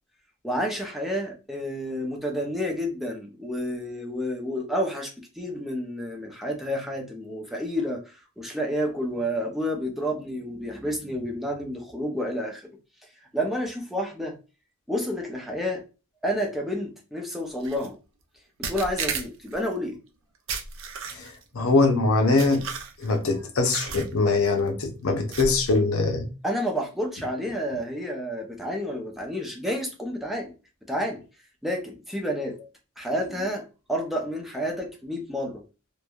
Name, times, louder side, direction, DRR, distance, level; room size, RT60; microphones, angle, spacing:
voice 1, 0.4-12.7 13.3-14.4 14.9-15.8 16.2-18.0 18.6-20.0 26.4-30.5 30.9-31.2 31.6-32.6 33.0-33.6 33.9-35.6, equal, ahead, 0.5 m, -30 dB
sound 1, 17.6-17.9 18.6-19.6 20.5-21.4 22.4-23.2 23.7-24.1 24.4-24.7 25.3-25.7, right 5 dB, 70° right, 0.5 m, -34 dB
voice 2, 21.1-22.6 23.0-26.3, left 3 dB, 90° left, 0.7 m, -23 dB
3.0 x 2.2 x 2.3 m
head